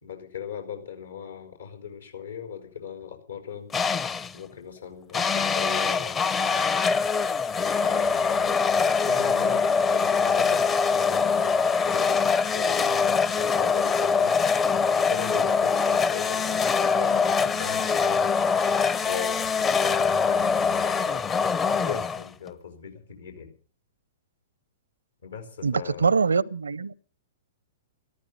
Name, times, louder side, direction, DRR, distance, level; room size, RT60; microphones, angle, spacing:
voice 1, 0.0-3.7 4.3-6.8 7.8-14.3 14.9-18.2 19.0-21.2 21.8-23.5 25.2-26.1, left 7 dB, 80° left, 5.0 m, -38 dB
sound 1, 3.7-4.4 5.1-22.5, left 5 dB, 20° left, 0.7 m, -23 dB
voice 2, 25.6-26.9, right 5 dB, 80° right, 0.6 m, -24 dB
14.0 x 14.0 x 6.7 m
figure-of-eight pair, 110°, 0 cm